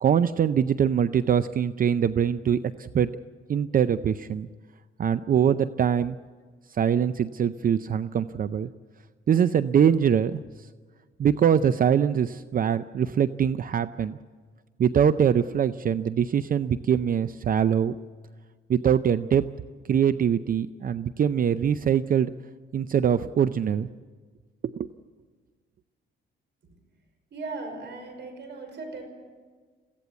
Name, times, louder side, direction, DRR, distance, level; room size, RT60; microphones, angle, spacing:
voice 1, 0.0-3.1 3.5-4.5 5.0-6.2 6.7-8.7 9.3-10.4 11.2-14.2 14.8-18.0 18.7-19.5 19.9-22.3 22.7-23.9 24.6-24.9, right 8 dB, 45° right, 13 dB, 0.5 m, -23 dB
voice 2, 27.3-29.0, right 3 dB, 60° right, 6 dB, 5.4 m, -37 dB
23.5 x 16.0 x 8.3 m, 1.5 s
cardioid pair, 90°, 20 cm